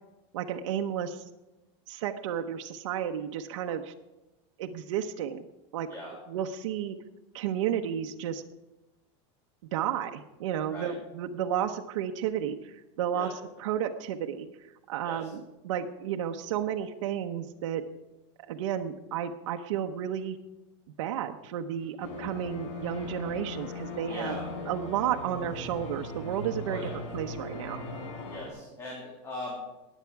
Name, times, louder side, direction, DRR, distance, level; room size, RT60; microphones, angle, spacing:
voice 1, 0.3-1.2 1.9-3.9 4.6-5.5 5.7-5.9 6.3-7.0 7.3-8.4 9.7-13.3 13.6-14.5 14.9-17.8 18.5-20.4 21.0-24.3 24.7-27.8, right 9 dB, 90° right, 4 dB, 0.9 m, -32 dB
sound 1, 22.0-28.5, left 2 dB, 85° left, 5.5 m, -39 dB
voice 2, 24.1-24.5 26.7-27.0 28.3-29.6, left 1 dB, 15° left, -3 dB, 2.6 m, -39 dB
19.5 x 8.1 x 4.7 m, 1.0 s
supercardioid pair, 170°, 16 cm